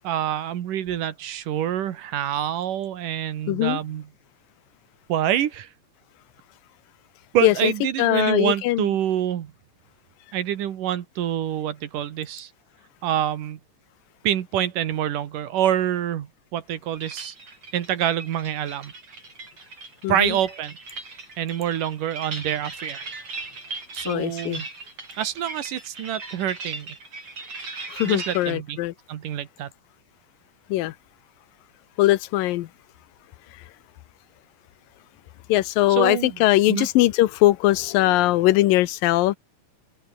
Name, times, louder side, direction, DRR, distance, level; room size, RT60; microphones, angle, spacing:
voice 1, 0.0-4.1 5.1-5.7 7.3-9.5 10.3-12.5 13.0-13.6 14.2-17.3 17.7-18.9 20.1-20.8 21.4-23.1 23.9-24.7 25.2-27.0 28.0-28.8 29.1-29.7 35.9-36.4 36.7-36.9, right 11 dB, 75° right, 3.2 m, -26 dB
voice 2, 3.5-3.8 7.4-7.7 8.0-8.9 20.0-20.4 24.1-24.6 27.9-28.9 30.7-31.0 32.0-32.7 35.5-39.4, left 16 dB, 90° left, 2.7 m, -20 dB
sound 1, 17.0-28.5, right 3 dB, 45° right, 7.3 m, -38 dB
open air
omnidirectional pair, 3.9 m